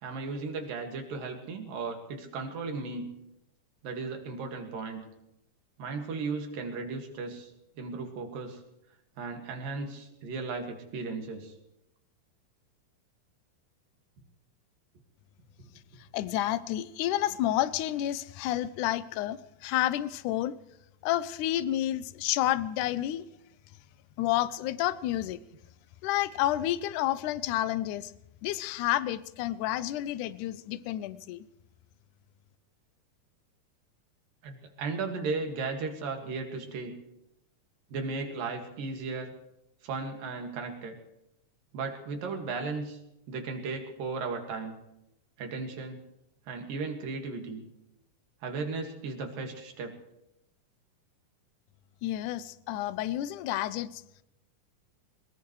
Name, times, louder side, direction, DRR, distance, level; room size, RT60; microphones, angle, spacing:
voice 1, 0.0-3.1 3.8-5.1 5.8-7.5 7.8-8.6 9.2-11.5 34.4-37.0 37.9-39.3 39.8-41.0 41.7-43.0 43.3-44.8 45.4-46.0 46.5-47.6 48.4-50.0, right 4 dB, 80° right, 3 dB, 3.7 m, -35 dB
voice 2, 16.1-20.6 21.0-23.3 24.2-25.4 26.0-28.1 28.4-31.5 52.0-54.0, left 13 dB, 75° left, 15 dB, 2.0 m, -30 dB
22.0 x 20.5 x 3.2 m, 0.85 s
omnidirectional pair, 3.9 m